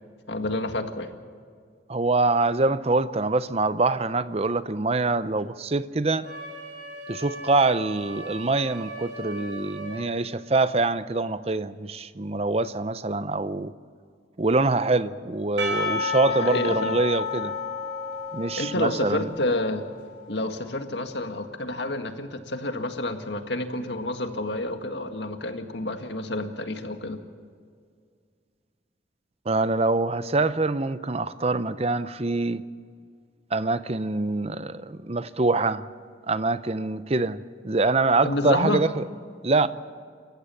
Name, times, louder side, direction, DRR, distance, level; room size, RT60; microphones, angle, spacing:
voice 1, 0.3-1.1 16.3-17.0 18.6-19.8 20.3-27.2 38.2-38.8, left 2 dB, 75° left, 1.8 m, -29 dB
voice 2, 1.9-6.3 7.1-13.7 14.4-17.5 18.3-19.3 29.5-32.6 33.5-35.9 36.3-39.0 39.4-39.7, right 3 dB, 35° right, 0.7 m, -24 dB
Wind instrument woodwind instrument, 6.2-10.0, right 1 dB, 60° right, 5.7 m, -39 dB
Percussion / Church bell, 15.6-20.1, left 4 dB, 80° right, 5.4 m, -31 dB
28.0 x 15.0 x 7.1 m
head